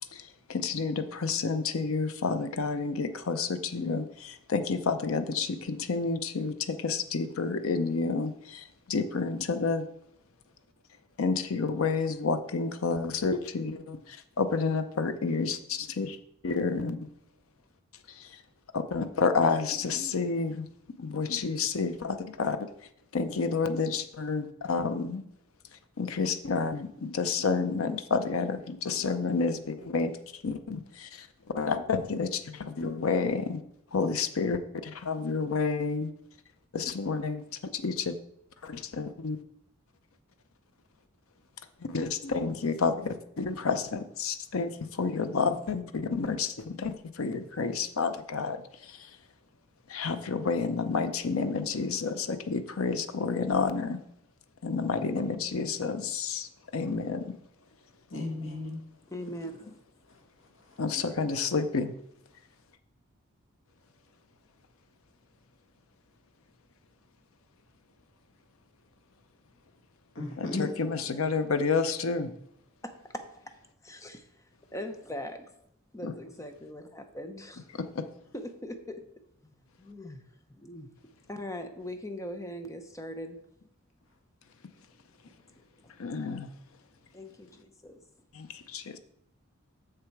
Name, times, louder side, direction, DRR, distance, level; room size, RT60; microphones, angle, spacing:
voice 1, 0.0-9.9 10.9-16.2 16.4-17.1 17.9-18.5 18.7-25.2 25.6-33.6 33.9-36.1 36.7-38.2 38.6-39.4 41.8-49.3 49.9-54.0 54.6-58.0 60.8-61.9 62.3-62.5 70.4-72.3 76.0-76.1 77.7-78.1 84.6-84.9 85.2-85.4 85.9-86.9 88.3-89.0, left 4 dB, 80° left, 0.6 m, -30 dB
voice 2, 58.1-58.8 60.1-60.8 70.1-70.7, left 2 dB, 65° left, 1.8 m, -36 dB
voice 3, 59.1-59.7 72.8-73.5 73.8-75.4 75.9-77.7 78.3-79.0 79.8-80.2 80.5-80.9 81.3-83.4 85.6-86.2 87.1-88.0, left 1 dB, 15° left, 0.8 m, -41 dB
6.8 x 6.7 x 4.7 m
head